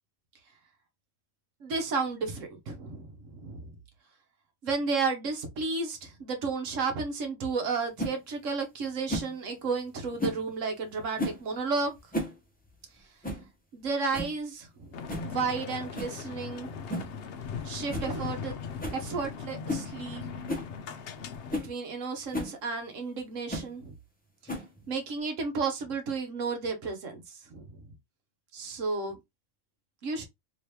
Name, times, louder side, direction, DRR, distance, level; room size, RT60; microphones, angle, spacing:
voice 1, 1.6-3.7 4.6-12.0 13.7-17.1 17.6-18.6 18.9-20.2 21.5-23.9 24.4-24.5 24.9-27.8 28.5-29.2 30.0-30.2, right 4 dB, 70° right, 1.2 m, -33 dB
sound 1, 8.0-8.2 9.1-9.4 10.2-10.5 11.2-11.5 12.0-12.4 12.7-12.8 13.2-13.5 13.8-13.9 14.1-14.4 15.1-15.3 15.9-16.2 16.9-17.2 17.5-17.6 17.9-18.1 18.4-18.5 18.8-19.0 19.7-19.9 20.5-20.7 21.2-21.3 21.5-21.7 22.3-22.6 23.5-23.7 24.5-24.8, left 1 dB, 10° left, 0.5 m, -33 dB
sound 2, 14.9-21.6, left 6 dB, 65° left, 0.6 m, -39 dB
3.0 x 2.8 x 3.2 m
omnidirectional pair, 1.4 m